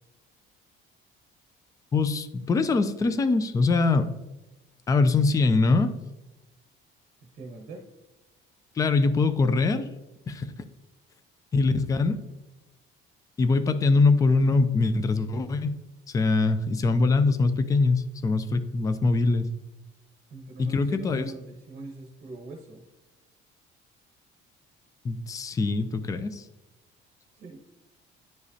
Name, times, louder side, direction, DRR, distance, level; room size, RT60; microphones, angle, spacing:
voice 1, 1.9-4.1 4.9-5.9 8.8-9.9 10.3-10.5 11.5-12.2 13.4-15.8 16.1-19.5 20.6-21.3 25.0-26.4, left 3 dB, 15° left, 11 dB, 0.3 m, -23 dB
voice 2, 7.3-7.8 20.3-22.8 27.3-27.6, right 3 dB, 45° right, 0 dB, 1.1 m, -42 dB
10.5 x 4.9 x 2.7 m, 1.0 s
cardioid pair, 160°, 21 cm